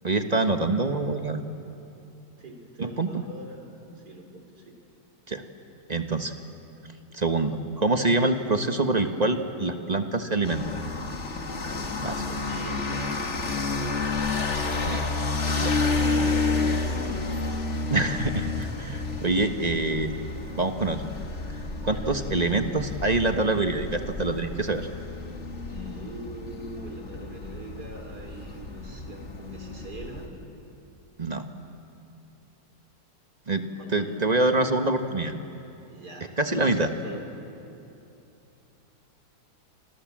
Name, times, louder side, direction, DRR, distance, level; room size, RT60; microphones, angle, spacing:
voice 1, 0.0-1.5 2.8-3.2 5.3-5.4 5.9-6.3 7.1-10.8 12.0-12.2 14.4-15.1 15.6-15.7 17.9-20.2 20.5-21.0 21.8-24.9 31.2-31.4 33.5-33.6 33.9-35.3 36.4-36.9, right 2 dB, 25° right, 6 dB, 1.3 m, -25 dB
voice 2, 2.4-4.8 12.0-13.3 15.5-17.2 21.9-22.0 25.6-30.3 33.8-34.1 35.8-36.3 36.5-37.2 37.7-37.8, equal, 60° right, 3 dB, 4.2 m, -42 dB
sound 1, 10.4-30.3, left 3 dB, 40° left, 2.0 m, -30 dB
28.5 x 27.5 x 7.6 m, 2.8 s
omnidirectional pair, 2.0 m